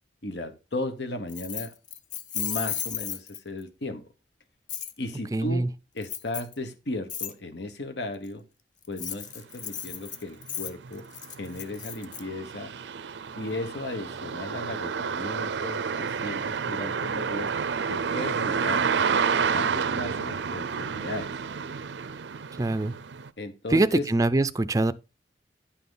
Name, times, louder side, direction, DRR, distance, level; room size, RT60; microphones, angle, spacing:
voice 1, 0.2-1.7 2.3-4.0 5.0-5.7 5.9-8.4 8.9-11.0 11.4-12.7 13.4-17.5 17.9-18.9 19.3-21.3 23.4-24.1, left 2 dB, 70° left, 1.2 m, -35 dB
Keys jangling, 1.3-3.6 4.7-4.9 6.0-6.5 7.1-7.3 8.8-12.2, left 9 dB, 45° left, 0.7 m, -34 dB
voice 2, 5.3-5.7 22.6-22.9 23.7-24.9, right 2 dB, 20° right, 0.4 m, -23 dB
sound 1, 9.9-10.0 10.4-23.3, right 6 dB, 80° right, 0.5 m, -30 dB
10.0 x 5.8 x 3.9 m
head